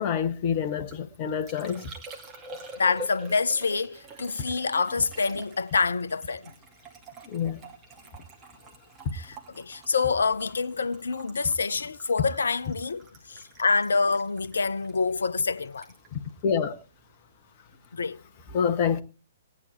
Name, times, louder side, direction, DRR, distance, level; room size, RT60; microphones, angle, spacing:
voice 1, 0.0-1.9 7.2-7.6 9.0-9.1 16.1-16.7 18.5-19.0, left 7 dB, 35° left, 1.2 m, -27 dB
Liquid, 0.7-17.3 17.5-18.1, right 1 dB, 25° right, 2.5 m, -47 dB
voice 2, 2.8-6.5 9.1-15.9 17.9-18.2, left 4 dB, 65° left, 0.7 m, -27 dB
18.0 x 10.0 x 4.3 m
figure-of-eight pair, 120°, 0 cm